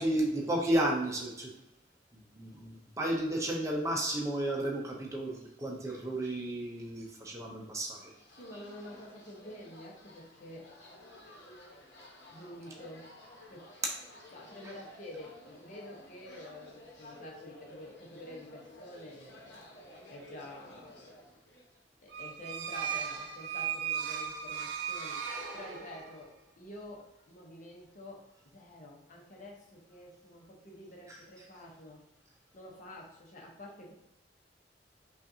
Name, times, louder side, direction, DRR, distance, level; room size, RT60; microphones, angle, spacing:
voice 1, 0.0-1.5 2.1-8.1 14.6-14.7 24.1-24.2 31.1-31.2, right 1 dB, 15° right, -2 dB, 0.6 m, -33 dB
sound 1, 8.1-21.8, left 1 dB, 80° left, 1.0 m, -53 dB
voice 2, 8.3-10.7 12.3-13.0 13.5-13.6 14.3-19.6 20.1-21.1 22.0-25.2 25.5-28.2 28.5-32.0 32.5-33.9, left 1 dB, 45° left, -2 dB, 0.9 m, -48 dB
sound 2, 22.1-26.2, right 8 dB, 80° right, 0.6 m, -37 dB
5.1 x 2.5 x 2.7 m, 0.87 s
head